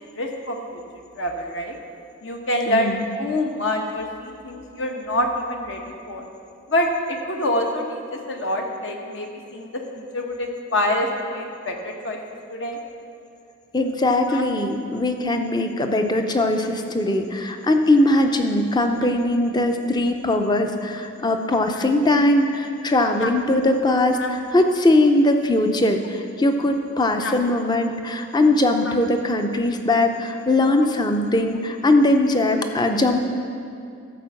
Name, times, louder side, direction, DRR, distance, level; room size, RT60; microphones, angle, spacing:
voice 1, 0.2-0.8 1.2-1.8 2.2-5.8 6.1-6.2 6.7-12.2 12.5-12.8 14.3-14.4 18.3-18.4 21.7-21.9 22.4-22.5 23.2-23.3 24.1-24.3 27.2-27.3 28.8-28.9 30.8-30.9, left 1 dB, 60° left, 2 dB, 1.1 m, -26 dB
voice 2, 2.7-3.0 13.7-33.2, left 1 dB, 20° left, 5 dB, 0.6 m, -20 dB
13.5 x 4.5 x 7.0 m, 2.5 s
head